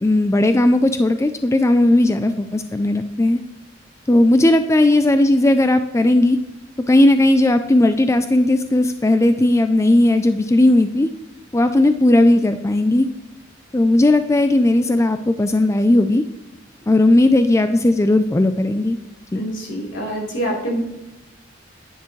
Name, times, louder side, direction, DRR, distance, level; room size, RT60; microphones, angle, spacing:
voice 1, 0.0-3.4 4.1-6.4 6.9-11.1 11.5-13.1 13.7-16.2 16.9-19.0 19.3-19.4, left 1 dB, 15° left, 9 dB, 0.4 m, -16 dB
voice 2, 19.4-20.8, right 1 dB, 70° left, -3 dB, 3.9 m, -25 dB
10.5 x 9.9 x 3.2 m, 0.90 s
head